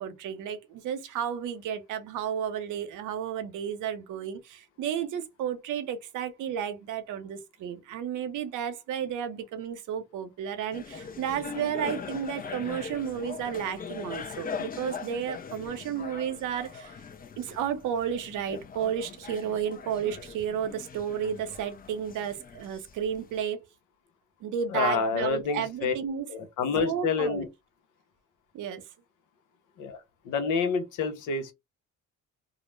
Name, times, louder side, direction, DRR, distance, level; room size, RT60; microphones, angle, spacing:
voice 1, 0.0-17.0 17.4-23.6 24.4-26.3 26.8-27.5 28.5-28.8, right 8 dB, 85° right, 0.7 m, -32 dB
sound 1, 10.7-23.4, left 6 dB, 30° left, 0.4 m, -41 dB
voice 2, 24.7-25.9 26.3-27.5 29.8-30.0 30.2-31.5, left 5 dB, 85° left, 0.8 m, -28 dB
2.4 x 2.0 x 3.1 m
cardioid pair, 90°, 30 cm